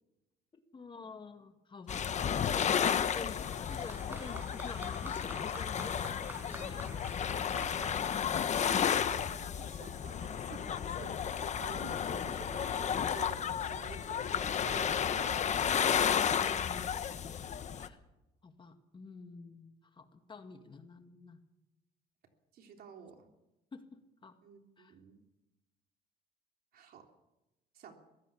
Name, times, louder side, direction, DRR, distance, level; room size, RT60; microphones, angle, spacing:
voice 1, 0.5-2.8 3.1-7.6 16.1-18.0 18.4-21.4 23.7-24.4 24.8-25.0, left 4 dB, 30° left, 7 dB, 1.9 m, -49 dB
sound 1, 1.9-17.9, left 8 dB, 45° left, 1.2 m, -33 dB
Applause, 3.4-9.8 10.7-10.8, right 1 dB, 10° right, 5.9 m, -49 dB
voice 2, 8.5-15.5 22.5-23.3 24.4-25.1 26.7-27.1 27.7-27.9, right 7 dB, 65° right, 4 dB, 3.4 m, -51 dB
23.0 x 16.0 x 7.1 m, 0.96 s
cardioid pair, 110°, 17 cm